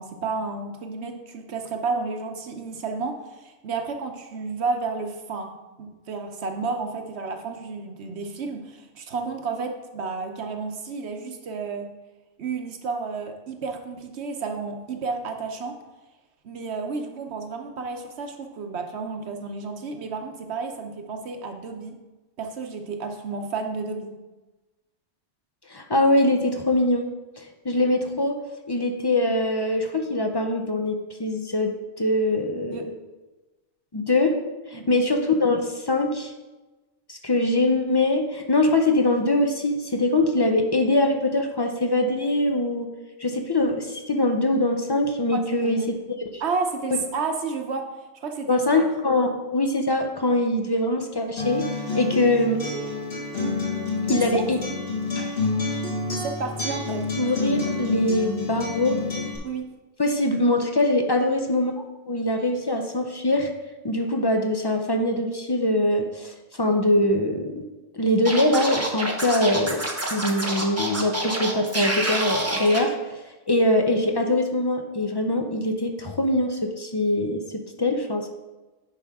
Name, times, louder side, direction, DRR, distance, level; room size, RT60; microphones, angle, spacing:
voice 1, 0.0-11.9 12.4-15.8 16.4-22.0 22.4-24.2 32.6-32.9 34.7-34.9 45.3-45.9 46.4-48.8 54.1-54.4 56.1-57.1 59.4-59.7, right 4 dB, 60° right, 5 dB, 1.1 m, -31 dB
voice 2, 25.7-27.1 27.4-28.4 28.7-31.7 32.0-32.9 33.9-34.4 34.7-36.3 37.1-42.9 43.2-45.8 46.3-46.4 48.5-51.7 51.9-52.6 54.1-54.6 57.2-59.1 60.0-61.7 62.1-63.5 63.8-67.6 67.9-69.8 70.1-78.3, left 1 dB, 35° left, 4 dB, 0.4 m, -23 dB
Acoustic guitar, 51.4-59.4, left 3 dB, 55° left, 2.0 m, -28 dB
Scratching (performance technique), 68.2-72.8, right 1 dB, 15° right, 0.8 m, -27 dB
10.0 x 5.3 x 3.6 m, 1.1 s
omnidirectional pair, 1.3 m